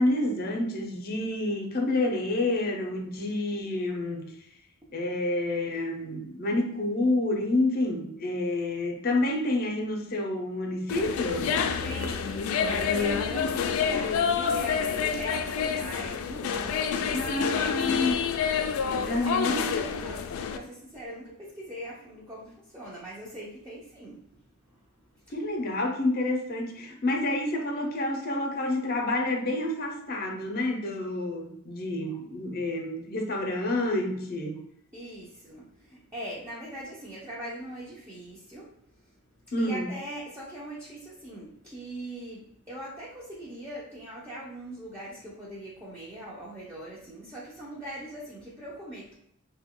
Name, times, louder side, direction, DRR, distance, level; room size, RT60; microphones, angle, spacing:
voice 1, 0.0-4.2 4.9-11.5 17.1-18.2 19.0-19.7 25.3-34.6 39.5-39.9, left 2 dB, 45° left, 2 dB, 0.6 m, -28 dB
sound 1, 10.9-20.6, left 6 dB, 90° left, 0.3 m, -28 dB
voice 2, 11.8-18.0 18.8-24.4 25.1-25.3 34.9-39.1 39.6-49.1, right 1 dB, 15° right, -8 dB, 0.5 m, -41 dB
2.9 x 2.2 x 3.6 m, 0.72 s
head